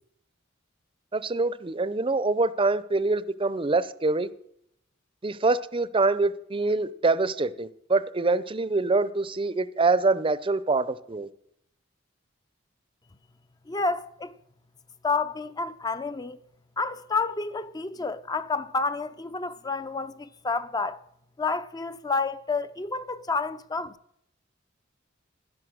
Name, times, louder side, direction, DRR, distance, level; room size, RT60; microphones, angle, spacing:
voice 1, 1.1-4.3 5.2-11.3, right 3 dB, 25° right, 0.6 m, -25 dB
voice 2, 13.7-14.3 15.0-16.4 16.8-21.0 21.4-24.0, left 4 dB, 20° left, 0.5 m, -29 dB
11.5 x 11.0 x 6.4 m
head